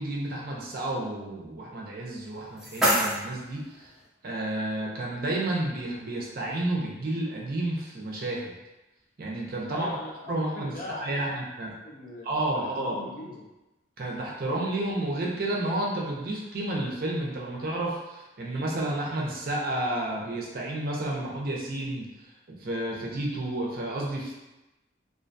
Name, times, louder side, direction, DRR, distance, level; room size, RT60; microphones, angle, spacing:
voice 1, 0.0-3.9 4.2-8.5 9.2-9.9 10.3-11.7 12.2-13.0 14.0-22.1 22.5-24.3, right 1 dB, 50° right, -3 dB, 0.5 m, -31 dB
sound 1, 2.1-4.1, equal, ahead, 0.6 m, -29 dB
voice 2, 9.7-13.5, left 2 dB, 45° left, -3 dB, 0.5 m, -40 dB
2.5 x 2.2 x 2.5 m, 1.0 s
head